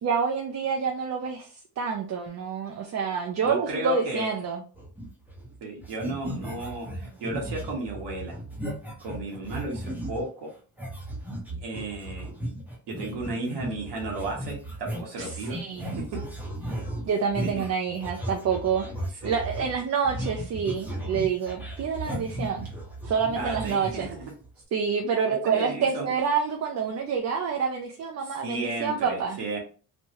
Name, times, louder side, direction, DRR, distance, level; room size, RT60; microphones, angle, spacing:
voice 1, 0.0-1.5 1.8-4.6 15.2-16.0 17.1-18.8 19.2-22.7 23.0-24.1 24.7-29.4, right 6 dB, 40° right, 2 dB, 0.5 m, -27 dB
voice 2, 3.4-4.3 5.6-8.4 9.0-10.5 11.6-12.3 12.9-15.6 16.0-16.2 17.4-17.6 19.2-19.4 23.3-24.3 25.3-26.1 28.2-29.6, right 2 dB, 70° right, -1 dB, 1.0 m, -34 dB
sound 1, 4.7-5.5 5.8-10.3 10.8-24.5, right 1 dB, 5° right, 0.8 m, -36 dB
3.1 x 2.1 x 2.8 m, 0.39 s
cardioid pair, 90°, 43 cm